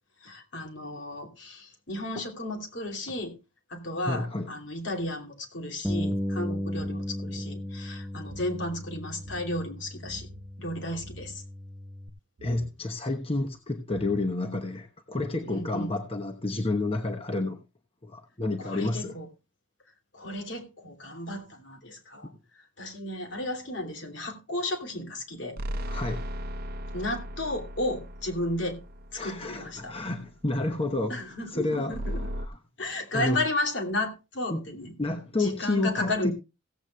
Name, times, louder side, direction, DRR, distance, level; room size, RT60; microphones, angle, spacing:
voice 1, 0.2-3.4 3.7-10.3 10.6-11.4 15.5-16.0 18.6-19.3 20.1-25.6 26.9-28.8 29.1-30.0 31.1-32.3 32.8-34.9 35.4-36.3, left 1 dB, 70° left, 2.9 m, -33 dB
voice 2, 4.1-4.5 12.4-17.6 18.0-19.1 22.2-22.3 25.9-26.2 29.2-31.2 31.5-31.9 33.1-33.4 34.5-34.6 35.0-36.3, left 2 dB, 30° left, 1.1 m, -30 dB
Bass guitar, 5.8-12.1, equal, 5° left, 0.7 m, -35 dB
sound 1, 6.1-8.5 8.8-8.9 9.2-9.5 10.0-10.5 10.9-11.4 12.4-12.8 13.5-13.6 13.9-14.5, right 3 dB, 85° right, 0.7 m, -48 dB
sound 2, 25.6-30.1 31.9-32.5, equal, 50° right, 0.7 m, -36 dB
16.5 x 8.0 x 3.3 m
head